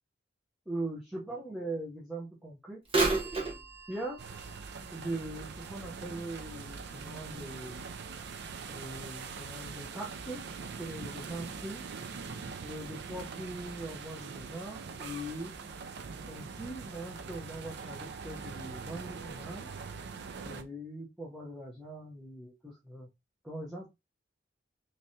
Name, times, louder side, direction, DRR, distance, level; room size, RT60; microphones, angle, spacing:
voice 1, 0.7-2.8 3.9-4.2 4.9-7.8 8.7-10.4 10.8-11.9 12.6-15.5 16.3-19.7 20.5-23.1 23.4-23.9, right 1 dB, ahead, -5 dB, 0.9 m, -41 dB
Bird vocalization bird call bird song / Telephone, 2.8-6.7 7.2-7.3 8.1-8.2 8.9-9.0, right 3 dB, 30° right, 1.0 m, -34 dB
sound 1, 4.2-20.6, right 5 dB, 60° right, 0.4 m, -43 dB
3.4 x 3.2 x 2.7 m, 0.22 s
head